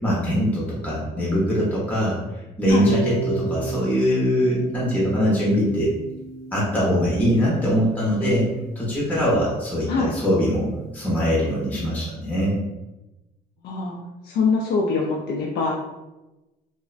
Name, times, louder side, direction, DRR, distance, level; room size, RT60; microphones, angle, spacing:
voice 1, 0.0-2.2 2.6-5.9 6.5-8.5 8.8-10.7 10.9-12.5, equal, 10° left, -7 dB, 0.7 m, -22 dB
Harp, 2.8-8.9, right 3 dB, 40° left, 0.9 m, -33 dB
voice 2, 13.6-14.0 14.2-15.7, left 4 dB, 70° left, -2 dB, 0.4 m, -23 dB
2.5 x 2.1 x 2.4 m, 1.0 s
cardioid pair, 110°, 17 cm